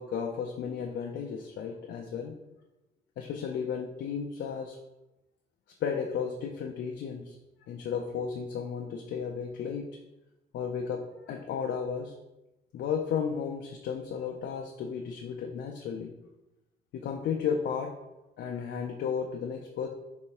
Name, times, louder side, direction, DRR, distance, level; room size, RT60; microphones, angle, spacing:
voice 1, 0.0-2.4 3.2-4.8 5.8-7.4 7.7-9.9 10.5-12.2 12.7-16.1 16.9-17.9 18.4-19.9, left 6 dB, 65° left, 2 dB, 0.4 m, -34 dB
4.7 x 2.6 x 2.9 m, 0.96 s
cardioid pair, 90°, 20 cm